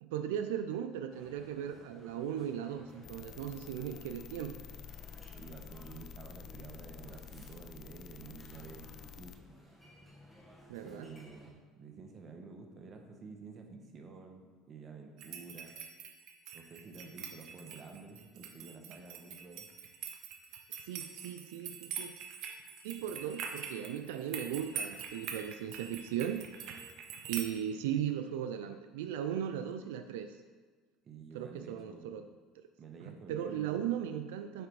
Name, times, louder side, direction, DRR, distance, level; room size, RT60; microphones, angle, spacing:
voice 1, 0.0-4.6 10.7-11.1 20.7-22.1 22.8-26.5 27.3-30.4 31.3-32.2 33.0-34.7, right 9 dB, 90° right, 7 dB, 0.3 m, -37 dB
sound 1, 1.1-11.5, equal, ahead, 1.5 m, -57 dB
sound 2, 3.0-9.4, left 8 dB, 50° left, 0.4 m, -50 dB
voice 2, 5.4-9.4 10.8-15.7 16.5-19.7 31.0-32.2 32.8-33.9, right 4 dB, 40° right, 3 dB, 1.0 m, -50 dB
sound 3, 15.2-27.5, right 7 dB, 65° right, 0.8 m, -44 dB
7.9 x 3.3 x 4.7 m, 1.4 s
supercardioid pair, 105°, 0 cm